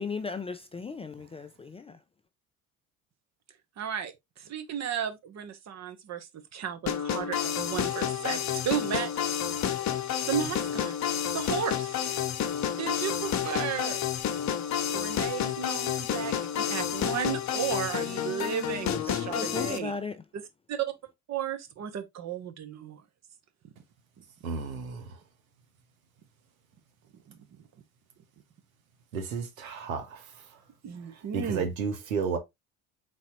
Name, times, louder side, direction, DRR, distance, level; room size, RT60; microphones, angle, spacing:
voice 1, 0.0-2.0 18.8-20.2, left 5 dB, 15° left, 0.5 m, -36 dB
voice 2, 3.8-8.4 8.6-9.1 10.3-10.9 11.3-12.0 12.8-14.0 14.9-20.0 20.3-20.4 20.7-20.9 21.3-23.0 27.3-27.4 30.8-31.6, right 9 dB, 40° right, 1.2 m, -34 dB
sound 1, 6.9-19.8, left 9 dB, 45° left, 1.0 m, -30 dB
voice 3, 24.4-25.1 29.1-30.2 31.3-32.4, right 5 dB, 80° right, 1.1 m, -32 dB
4.1 x 3.8 x 3.0 m
hypercardioid pair, 60°, 40 cm